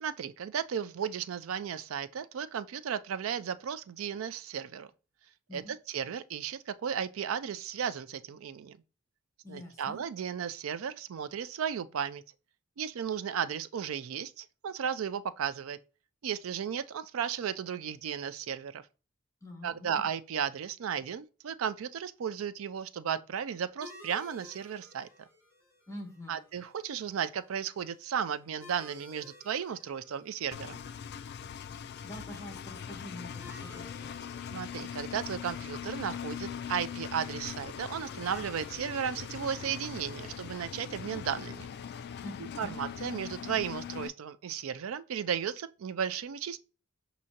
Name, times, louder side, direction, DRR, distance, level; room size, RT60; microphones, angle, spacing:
voice 1, 0.0-4.9 5.5-8.8 9.5-12.2 12.8-15.8 16.2-18.8 19.6-25.1 26.3-30.8 34.5-41.7 42.6-46.6, right 8 dB, 70° right, 0.4 m, -35 dB
voice 2, 9.4-10.0 19.4-20.0 25.9-26.4 31.7-34.2 42.2-42.8, left 1 dB, 15° left, 1.1 m, -46 dB
sound 1, 23.8-42.9, left 2 dB, 10° right, 1.6 m, -57 dB
Engine, 30.5-44.1, left 8 dB, 50° left, 0.3 m, -41 dB
6.2 x 2.7 x 2.8 m
head